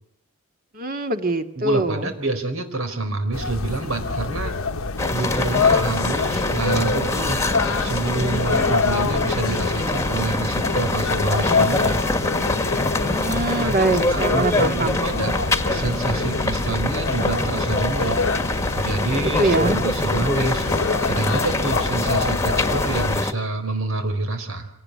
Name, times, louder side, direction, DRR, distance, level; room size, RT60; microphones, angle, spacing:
voice 1, 0.7-2.1 13.0-15.0 19.4-19.8, right 2 dB, 45° right, 7 dB, 2.1 m, -23 dB
voice 2, 1.6-4.6 5.1-7.4 7.8-12.0 13.6-15.4 15.7-18.2 18.7-20.6 21.1-24.7, right 3 dB, 75° right, 7 dB, 4.2 m, -27 dB
sound 1, 3.3-23.2, left 4 dB, 85° left, 1.1 m, -26 dB
sound 2, 5.0-23.3, left 2 dB, 15° left, 1.5 m, -25 dB
26.0 x 18.5 x 9.7 m, 0.78 s
head